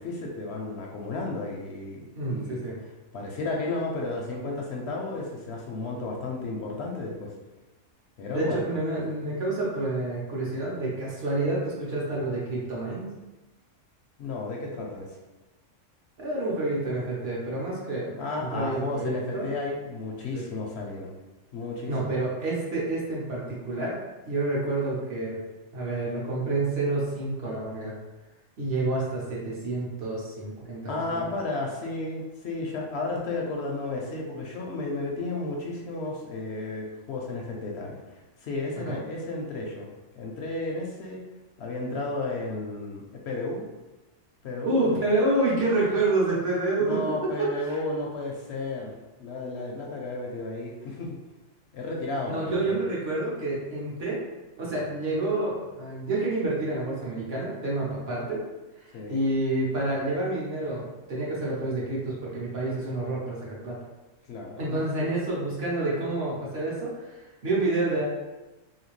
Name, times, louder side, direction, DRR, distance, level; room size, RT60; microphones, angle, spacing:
voice 1, 0.0-2.6 3.1-7.3 8.2-8.6 14.2-15.1 18.1-21.2 21.5-22.2 30.9-39.9 40.1-41.2 41.6-43.7 44.4-44.8 46.8-48.9 49.2-51.2 51.7-52.8 58.9-59.2 64.3-64.8, left 2 dB, 65° left, -1 dB, 0.7 m, -33 dB
voice 2, 2.1-2.7 8.3-13.1 16.2-18.1 18.4-19.5 20.3-20.4 21.9-23.9 24.2-25.4 25.7-28.0 28.6-31.2 38.8-39.0 44.6-47.0 47.4-47.8 52.3-54.2 54.6-58.4 58.8-63.8 64.6-68.0, right 2 dB, 55° right, -6 dB, 1.1 m, -28 dB
2.8 x 2.8 x 3.0 m, 1.1 s
omnidirectional pair, 1.3 m